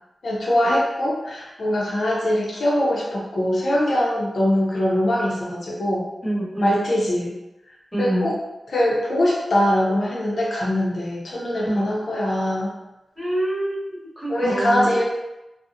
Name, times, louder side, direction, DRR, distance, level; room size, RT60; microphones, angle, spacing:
voice 1, 0.2-6.1 6.6-7.3 8.0-8.4 8.7-12.7 14.3-15.0, left 1 dB, 60° left, -5 dB, 0.6 m, -22 dB
voice 2, 6.2-6.8 7.9-8.3 11.6-11.9 13.2-15.0, right 1 dB, 5° right, -9 dB, 1.0 m, -26 dB
2.4 x 2.0 x 2.7 m, 0.97 s
wide cardioid pair, 145°, 0 cm